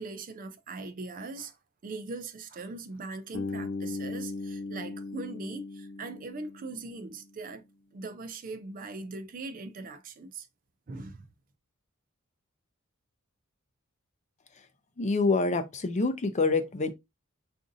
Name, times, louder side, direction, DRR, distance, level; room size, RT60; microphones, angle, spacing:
voice 1, 0.0-1.6 1.8-7.6 7.9-10.5 10.9-11.2, right 3 dB, 40° right, 0.4 m, -40 dB
Bass guitar, 3.3-7.3, left 3 dB, 75° left, 0.7 m, -38 dB
voice 2, 15.0-16.9, left 3 dB, 35° left, 0.5 m, -26 dB
4.9 x 2.6 x 2.5 m
head